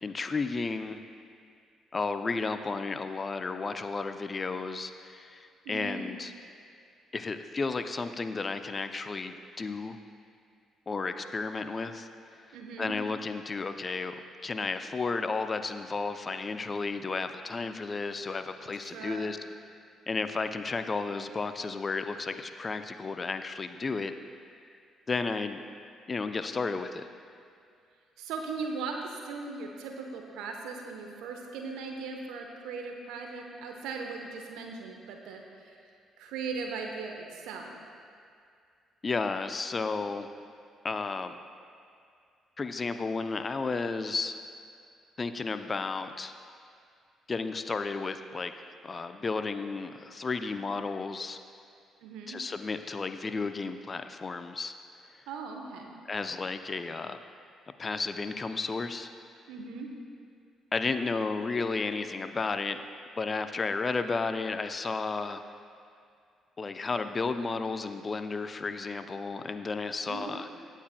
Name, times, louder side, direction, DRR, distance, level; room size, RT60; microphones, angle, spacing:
voice 1, 0.0-1.0 1.9-6.3 7.1-10.0 10.9-12.1 12.5-19.4 20.1-24.1 25.1-25.6 26.1-27.0 39.0-40.3 40.8-41.4 42.6-44.4 45.2-46.3 47.3-48.5 48.8-51.4 52.3-54.7 55.2-55.3 56.1-57.2 57.8-59.1 60.7-62.8 63.2-65.4 66.6-70.5, left 4 dB, 35° left, 9 dB, 0.5 m, -33 dB
voice 2, 5.6-6.1 12.5-12.9 18.8-19.3 28.2-35.8 36.2-37.7 52.0-52.4 55.3-55.9 59.5-59.9 70.1-70.5, right 4 dB, 65° right, 2 dB, 0.9 m, -38 dB
16.5 x 9.1 x 2.2 m, 2.3 s
figure-of-eight pair, 45°, 0 cm